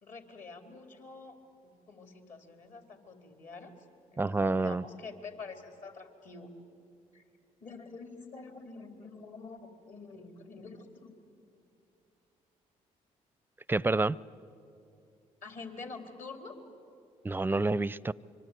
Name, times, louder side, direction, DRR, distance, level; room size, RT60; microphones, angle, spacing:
voice 1, 0.0-1.4 1.6-3.7 4.1-6.5 7.1-7.2 7.6-11.1 15.4-16.6, left 4 dB, 55° left, 5 dB, 3.8 m, -47 dB
voice 2, 4.2-4.8 13.7-14.2 17.2-18.1, right 2 dB, 15° right, 22 dB, 0.5 m, -28 dB
25.5 x 24.0 x 9.3 m, 2.6 s
hypercardioid pair, 55°, 16 cm